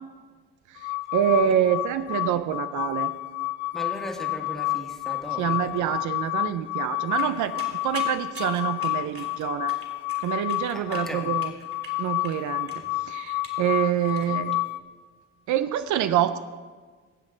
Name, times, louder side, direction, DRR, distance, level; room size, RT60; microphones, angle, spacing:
sound 1, 0.8-14.8, left 18 dB, 65° left, 0.5 m, -30 dB
voice 1, 1.1-3.1 5.4-9.7 10.2-11.5 12.0-12.7 13.1-14.6 15.5-16.4, right 10 dB, 75° right, 11 dB, 0.5 m, -26 dB
voice 2, 3.7-5.9 10.7-11.4 14.3-14.4, equal, ahead, 2 dB, 1.6 m, -38 dB
sound 2, 7.1-14.3, right 3 dB, 45° right, 2.7 m, -45 dB
16.0 x 7.6 x 3.8 m, 1.5 s
cardioid pair, 90°, 30 cm